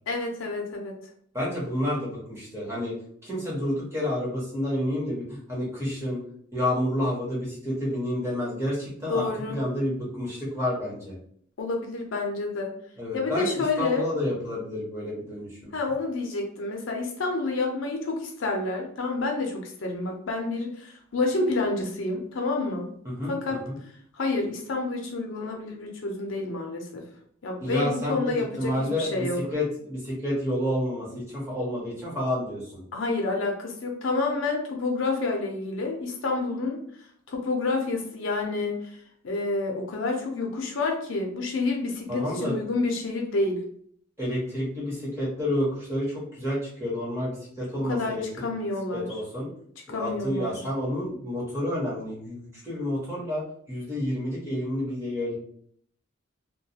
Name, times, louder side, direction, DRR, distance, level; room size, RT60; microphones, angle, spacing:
voice 1, 0.1-1.0 9.1-9.6 11.6-12.7 13.1-14.1 15.7-22.9 23.3-23.6 24.1-27.0 27.4-29.4 32.9-36.8 37.3-39.0 39.2-43.6 47.8-49.1 49.9-50.5, left 3 dB, 70° left, 1 dB, 0.5 m, -29 dB
voice 2, 1.3-2.9 3.2-6.2 6.5-11.1 13.0-15.7 23.0-23.7 27.6-29.3 29.5-32.8 42.1-42.6 44.2-48.5 48.9-49.5 49.9-55.4, left 1 dB, 15° right, -6 dB, 1.0 m, -29 dB
2.3 x 2.2 x 2.7 m, 0.63 s
head